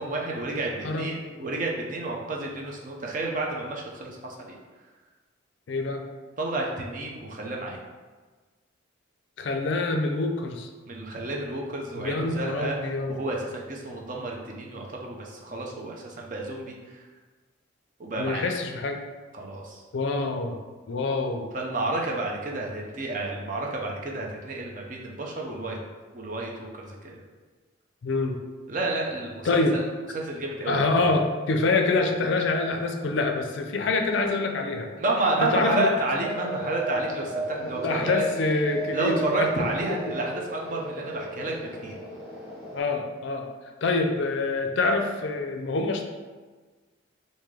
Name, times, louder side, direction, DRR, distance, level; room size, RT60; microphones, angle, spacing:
voice 1, 0.0-4.5 6.4-7.8 10.9-12.8 13.1-17.0 18.0-18.4 19.3-19.8 21.5-25.8 26.1-27.2 28.7-29.5 30.1-31.1 35.0-38.2 38.9-42.0, right 2 dB, 40° right, -1 dB, 0.5 m, -30 dB
voice 2, 0.5-1.4 5.7-6.0 9.4-10.7 11.9-13.2 18.2-19.0 19.9-20.6 20.9-21.5 28.0-28.4 29.4-29.8 30.7-34.9 35.4-36.0 37.6-39.5 39.9-40.0 42.7-43.5 43.8-46.0, left 3 dB, 65° left, 4 dB, 0.4 m, -26 dB
sound 1, 36.2-42.8, right 2 dB, 5° right, 1.0 m, -34 dB
3.6 x 2.6 x 3.2 m, 1.4 s
head